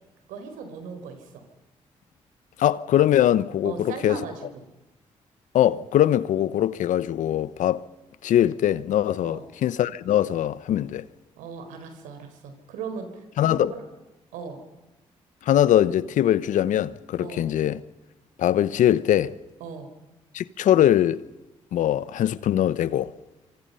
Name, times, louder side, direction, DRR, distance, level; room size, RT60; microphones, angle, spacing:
voice 1, 0.3-1.4 3.6-4.6 9.2-9.5 11.4-13.9 14.3-14.6 17.2-17.5 19.6-19.9, right 5 dB, 85° right, 4.5 m, -38 dB
voice 2, 2.6-4.2 5.5-7.8 8.2-11.0 13.4-13.7 15.5-17.8 18.4-19.3 20.3-21.2 21.7-23.1, left 11 dB, 75° left, 1.0 m, -22 dB
26.5 x 26.0 x 5.7 m
supercardioid pair, 55°, 13 cm